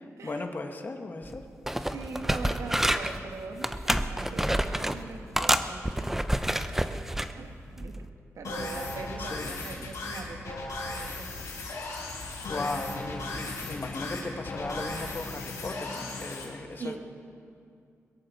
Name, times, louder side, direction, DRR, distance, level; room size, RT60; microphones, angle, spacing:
voice 1, 0.2-1.5 9.2-9.6 12.4-17.0, left 3 dB, 35° left, 5 dB, 1.2 m, -37 dB
sound 1, 1.2-1.4 1.7-3.2 3.6-5.0 5.4-7.3 7.8-8.0, right 1 dB, 5° right, 0.6 m, -28 dB
voice 2, 1.8-6.1 7.3-8.1 8.3-11.6 16.8-17.0, right 4 dB, 75° right, 5 dB, 1.3 m, -41 dB
sound 2, 8.4-16.4, left 2 dB, 90° left, 3.7 m, -36 dB
22.0 x 14.0 x 4.1 m, 2.4 s
wide cardioid pair, 120°, 5 cm